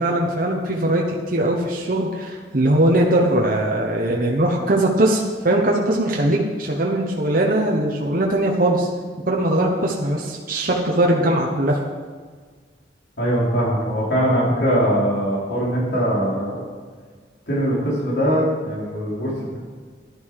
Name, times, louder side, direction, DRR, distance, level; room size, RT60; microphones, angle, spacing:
voice 1, 0.0-8.9 9.3-11.8, right 1 dB, 50° right, -1 dB, 1.2 m, -20 dB
voice 2, 13.2-16.6 17.5-19.6, equal, 65° left, -5 dB, 4.2 m, -21 dB
11.5 x 11.0 x 4.9 m, 1.5 s
head